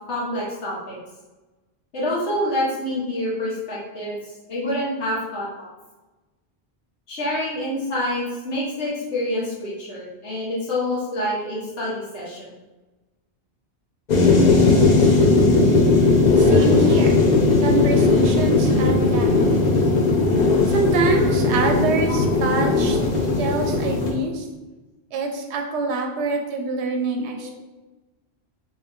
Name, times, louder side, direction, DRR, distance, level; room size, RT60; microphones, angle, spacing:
voice 1, 0.1-1.0 1.9-4.2 4.5-5.7 7.1-12.5 19.3-19.7 27.4-27.5, left 1 dB, 85° left, -6 dB, 1.4 m, -27 dB
sound 1, 14.1-24.1, left 3 dB, 50° left, 0.7 m, -17 dB
voice 2, 16.4-17.2 17.6-19.4 20.7-24.4 25.1-27.6, right 3 dB, 90° right, 4 dB, 0.9 m, -25 dB
3.0 x 2.7 x 3.3 m, 1.1 s
omnidirectional pair, 1.1 m